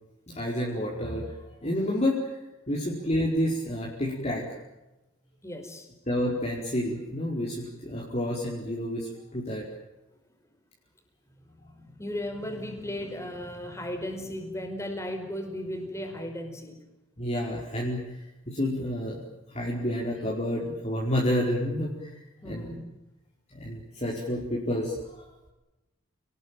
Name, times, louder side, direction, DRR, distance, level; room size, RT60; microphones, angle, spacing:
voice 1, 0.3-1.3 1.6-2.2 2.7-4.4 6.1-9.6 17.2-18.1 18.5-19.2 19.5-22.8 23.5-25.2, left 1 dB, 30° left, -3 dB, 4.8 m, -29 dB
voice 2, 5.4-5.9 11.5-16.8 22.4-22.9, left 1 dB, 15° left, 6 dB, 5.1 m, -36 dB
29.5 x 20.0 x 9.2 m, 1.0 s
head